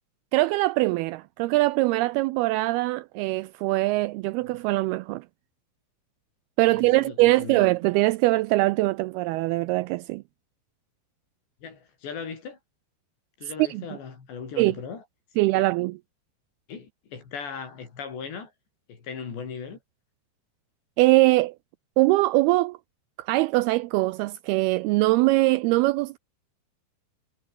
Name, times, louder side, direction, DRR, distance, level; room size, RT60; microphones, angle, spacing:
voice 1, 0.3-5.3 6.6-10.2 13.6-13.8 14.6-14.7 15.4-16.0 21.0-21.6 22.0-22.8 23.2-26.2, right 20 dB, 85° right, 2.3 m, -22 dB
voice 2, 6.7-7.7 11.6-12.6 13.4-15.0 15.6-15.7 16.7-18.5 18.9-19.8, left 6 dB, 80° left, 7.5 m, -38 dB
omnidirectional pair, 4.9 m